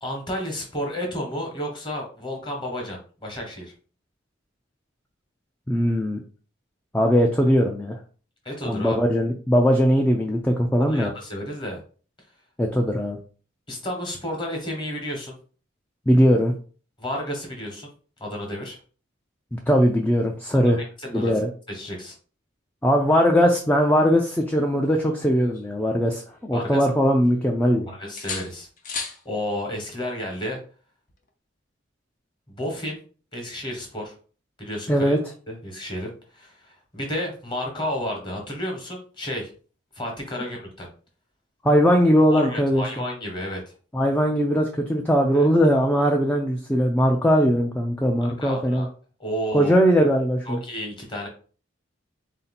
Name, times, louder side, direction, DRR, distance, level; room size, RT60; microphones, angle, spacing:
voice 1, 0.0-3.7 8.4-9.0 10.8-11.8 13.7-15.4 17.0-17.9 18.2-18.8 20.5-20.7 21.0-21.3 21.7-22.1 26.5-26.9 27.9-30.6 32.5-33.0 33.3-34.1 34.6-35.2 35.5-39.5 39.9-40.9 42.3-43.7 45.3-45.5 48.2-48.9 49.2-49.7 50.5-51.3, equal, 25° left, 1 dB, 1.1 m, -32 dB
voice 2, 5.7-6.2 6.9-8.0 8.7-11.1 12.6-13.2 16.1-16.5 19.5-20.8 21.1-21.5 22.8-27.9 34.9-35.2 41.6-42.8 43.9-48.9 49.5-50.6, equal, 10° left, 1 dB, 0.4 m, -20 dB
sound 1, 25.0-26.6 26.9-27.7 28.2-29.2 31.1-31.3, left 4 dB, 40° left, 0.7 m, -37 dB
3.8 x 2.8 x 4.1 m, 0.40 s
head